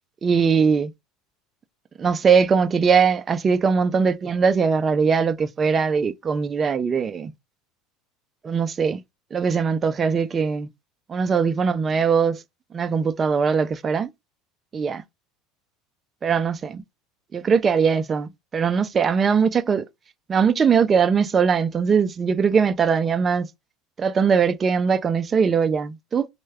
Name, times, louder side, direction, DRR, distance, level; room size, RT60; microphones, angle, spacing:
voice 1, 0.2-0.9 2.0-7.3 8.4-9.0 9.3-10.7 11.1-12.4 12.7-14.1 14.7-15.0 16.2-16.8 17.3-19.8 20.3-23.5 24.0-26.3, right 6 dB, 20° right, 0.3 m, -21 dB
4.4 x 2.1 x 3.3 m
cardioid pair, 160°, 0 cm